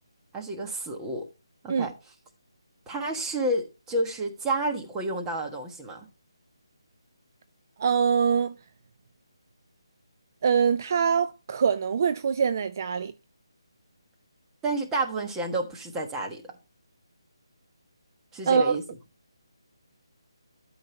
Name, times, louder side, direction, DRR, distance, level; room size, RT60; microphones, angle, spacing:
voice 1, 0.3-1.3 1.6-1.9 2.9-6.1 14.6-16.5 18.3-18.8, right 1 dB, 10° right, 1.4 m, -30 dB
voice 2, 7.8-8.5 10.4-13.1 18.5-18.8, right 6 dB, 40° right, 0.5 m, -23 dB
12.5 x 5.5 x 4.3 m
figure-of-eight pair, 165°, 3 cm